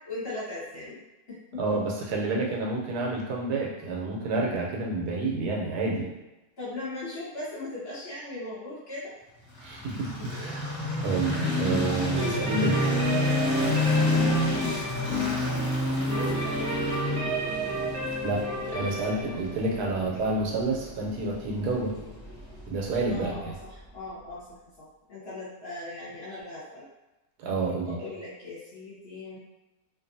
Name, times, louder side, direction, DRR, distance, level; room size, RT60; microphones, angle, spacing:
voice 1, 0.0-1.0 1.3-1.8 6.6-9.1 10.4-10.5 15.9-17.2 18.7-19.3 23.1-26.9 27.6-29.4, left 2 dB, 45° left, -8 dB, 0.9 m, -39 dB
voice 2, 1.6-6.1 9.6-10.6 11.0-12.8 18.2-18.4 18.7-21.9 22.7-23.5 27.4-28.0, right 2 dB, 85° right, -2 dB, 1.2 m, -29 dB
sound 1, 9.5-23.6, left 1 dB, 25° left, 0.7 m, -29 dB
sound 2, 12.1-21.8, right 2 dB, 55° right, 0.8 m, -34 dB
2.6 x 2.5 x 2.6 m, 1.0 s
omnidirectional pair, 1.7 m